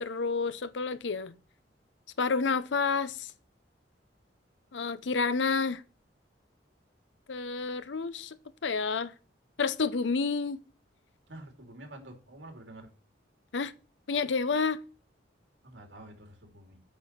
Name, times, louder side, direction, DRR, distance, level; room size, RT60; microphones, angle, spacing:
voice 1, 0.0-1.3 2.2-3.3 4.7-5.8 7.3-9.1 9.6-10.6 13.5-13.7 14.1-14.8, left 4 dB, 80° left, 0.7 m, -29 dB
voice 2, 11.3-12.9 15.6-16.8, right 1 dB, 85° right, 2.6 m, -48 dB
8.6 x 5.4 x 5.7 m
head